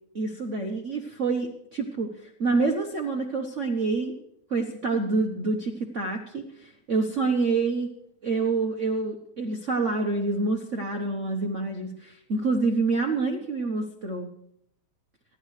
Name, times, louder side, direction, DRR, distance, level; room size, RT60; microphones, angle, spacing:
voice 1, 0.1-4.1 4.5-7.9 8.2-14.3, right 3 dB, 45° right, 2 dB, 1.1 m, -27 dB
27.0 x 11.0 x 3.3 m, 0.70 s
omnidirectional pair, 2.4 m